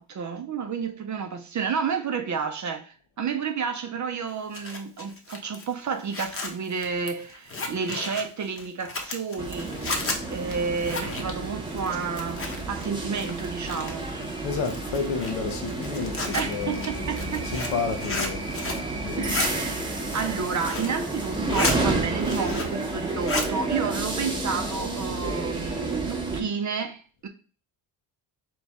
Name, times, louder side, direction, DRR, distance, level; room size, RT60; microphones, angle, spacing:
voice 1, 0.0-9.8 10.3-14.1 16.3-17.5 19.2-27.3, right 6 dB, 40° right, 0.5 m, -31 dB
Zipper (clothing), 4.3-12.9 13.1-14.1 14.6-18.9 19.1-19.5 20.0-21.0 21.3-21.8 22.1-22.8 23.1-23.5, left 3 dB, 30° left, 0.9 m, -33 dB
sound 1, 9.4-26.4, right 2 dB, 10° right, 0.8 m, -30 dB
voice 2, 14.4-19.6, left 5 dB, 80° left, 0.9 m, -32 dB
4.0 x 3.1 x 3.5 m
cardioid pair, 105°, 47 cm